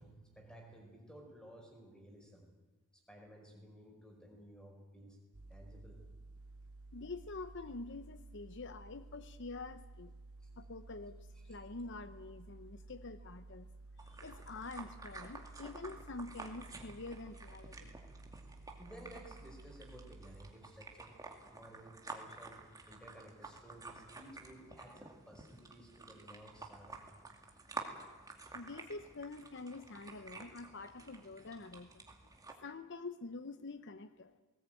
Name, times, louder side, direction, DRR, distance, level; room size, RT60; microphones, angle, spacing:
voice 1, 0.0-2.4 3.1-5.2 5.5-6.0 10.4-10.5 11.3-11.6 18.8-21.1 21.5-22.6 22.9-27.0, right 1 dB, 5° left, 1 dB, 4.9 m, -55 dB
sound 1, 5.3-20.5, right 2 dB, 85° right, 0.9 m, -54 dB
voice 2, 6.9-10.1 10.6-13.7 14.0-17.9 28.5-32.0 32.6-34.3, left 3 dB, 55° left, 11 dB, 0.8 m, -47 dB
sound 2, 14.0-32.5, right 3 dB, 15° right, 2.4 m, -51 dB
19.5 x 18.5 x 9.1 m, 1.3 s
head